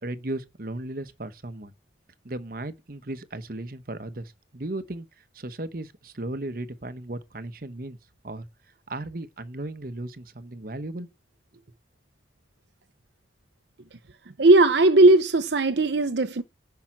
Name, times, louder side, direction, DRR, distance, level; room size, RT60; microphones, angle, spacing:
voice 1, 0.0-1.7 2.2-5.1 5.3-8.0 8.2-8.4 8.9-11.1 11.5-11.6, right 1 dB, 50° right, 1.0 m, -36 dB
voice 2, 14.4-16.4, right 2 dB, 70° right, 0.7 m, -17 dB
10.5 x 5.8 x 7.5 m
head